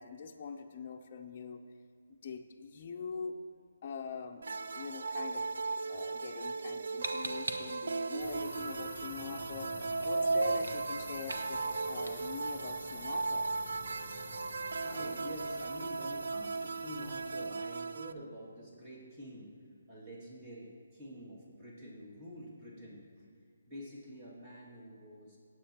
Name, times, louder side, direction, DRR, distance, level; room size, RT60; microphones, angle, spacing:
voice 1, 0.0-1.6 2.1-3.4 3.8-5.4 5.9-9.7 10.0-13.5, left 5 dB, 35° left, 1 dB, 0.6 m, -43 dB
sound 1, 4.4-18.1, right 3 dB, 70° right, 0.4 m, -36 dB
sound 2, 5.7-15.5, right 2 dB, 85° right, 1.0 m, -48 dB
sound 3, 8.2-17.5, left 2 dB, ahead, 2.5 m, -50 dB
voice 2, 14.4-19.6 19.9-23.3 23.7-25.4, equal, 20° right, -5 dB, 2.2 m, -47 dB
17.5 x 8.1 x 2.9 m, 2.2 s
hypercardioid pair, 165°, 0 cm